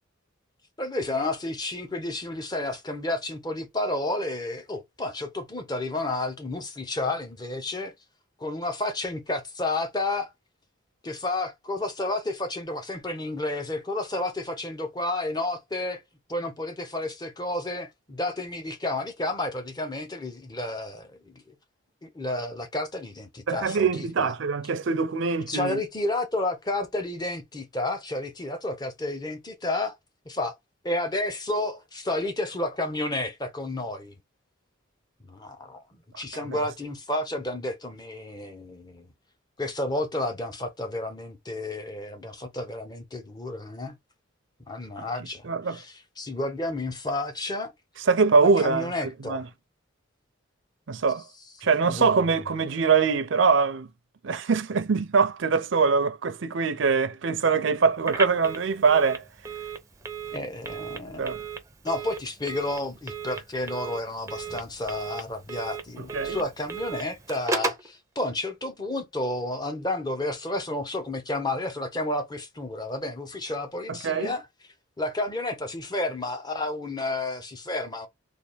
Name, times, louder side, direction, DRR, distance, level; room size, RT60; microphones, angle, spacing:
voice 1, 0.8-7.9 8.4-10.3 11.0-16.0 16.3-21.4 22.0-24.3 25.5-29.9 30.3-30.5 30.8-34.1 35.3-39.1 39.6-43.9 44.7-47.7 48.6-49.5 51.8-52.1 60.3-61.4 61.8-74.4 75.0-78.1, left 2 dB, 20° left, 0.8 m, -31 dB
voice 2, 23.5-25.8 45.0-45.1 45.4-45.8 48.1-49.5 50.9-51.2 51.6-53.9 54.2-59.2 61.2-61.4 66.1-66.4 73.9-74.3, right 5 dB, 60° right, 0.5 m, -23 dB
Telephone, 58.0-67.9, right 4 dB, 15° right, 0.5 m, -35 dB
3.4 x 2.4 x 4.0 m
head